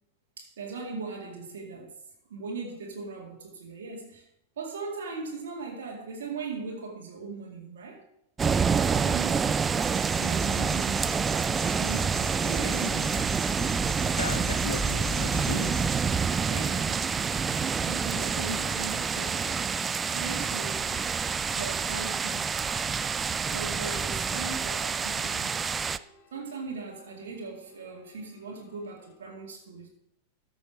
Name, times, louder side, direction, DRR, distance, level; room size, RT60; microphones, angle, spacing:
voice 1, 0.4-1.9 2.3-4.3 4.6-8.0 8.7-9.6 10.2-11.1 11.7-13.2 16.3-17.0 17.8-19.6 20.1-21.1 21.5-22.6 23.4-25.6 26.3-29.9, right 4 dB, 60° right, 2.2 m, -39 dB
sound 1, 8.4-26.0, right 6 dB, 20° right, 0.3 m, -28 dB
sound 2, 9.2-29.2, left 4 dB, 40° left, 1.9 m, -59 dB
sound 3, 9.8-15.9, left 4 dB, 20° left, 1.7 m, -40 dB
voice 2, 14.2-15.9 23.9-24.1 29.3-29.4, left 5 dB, 75° left, 0.6 m, -37 dB
13.5 x 6.3 x 4.7 m
figure-of-eight pair, 90°, 0 cm